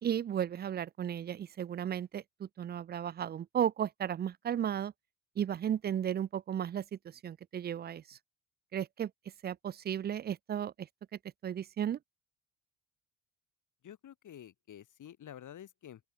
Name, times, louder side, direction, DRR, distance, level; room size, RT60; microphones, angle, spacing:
voice 1, 0.0-4.9 5.4-8.2 8.7-9.1 9.4-10.9 11.4-12.0, right 9 dB, 25° right, 0.5 m, -34 dB
voice 2, 13.8-16.0, left 10 dB, 50° left, 6.7 m, -50 dB
open air
figure-of-eight pair, 50°, 39 cm